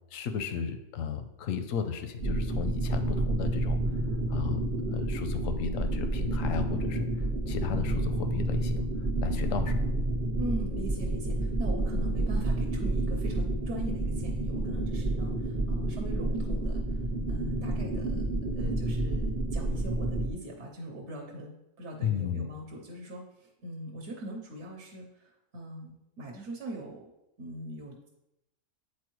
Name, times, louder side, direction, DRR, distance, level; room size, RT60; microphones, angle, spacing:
voice 1, 0.1-3.8 4.3-7.1 7.5-8.8 9.2-9.9 22.0-22.4, left 7 dB, 85° left, 8 dB, 1.0 m, -34 dB
sound 1, 2.2-20.3, right 2 dB, 45° right, 0.9 m, -30 dB
voice 2, 10.4-17.0 17.3-18.2 18.6-27.0 27.4-28.1, right 1 dB, 60° right, 1 dB, 1.1 m, -41 dB
8.5 x 4.3 x 3.1 m, 0.88 s
omnidirectional pair, 1.3 m